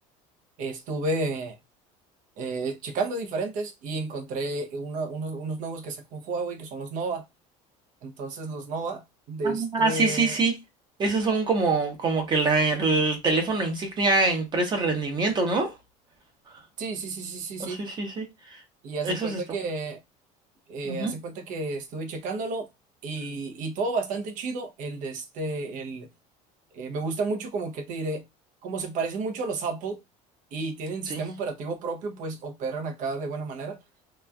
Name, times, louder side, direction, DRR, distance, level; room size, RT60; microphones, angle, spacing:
voice 1, 0.6-1.6 2.4-7.2 8.0-9.0 9.3-10.4 16.8-17.8 18.8-20.0 20.7-22.7 23.0-26.1 26.7-28.2 28.6-30.0 30.5-33.8, right 3 dB, 55° right, 0.8 m, -31 dB
voice 2, 9.4-10.6 11.0-15.7 17.6-18.3 19.0-19.4 20.8-21.1 31.1-31.2, right 3 dB, 30° right, 0.9 m, -24 dB
3.0 x 2.4 x 2.3 m
cardioid pair, 140°, 16 cm